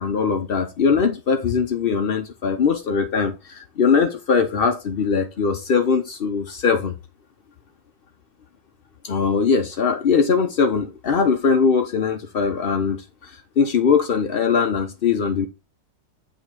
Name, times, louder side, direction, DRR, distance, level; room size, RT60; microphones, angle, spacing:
voice 1, 0.0-6.9 9.0-13.3 13.6-15.5, left 5 dB, 75° left, 0.5 m, -21 dB
9.0 x 3.1 x 4.5 m
omnidirectional pair, 1.9 m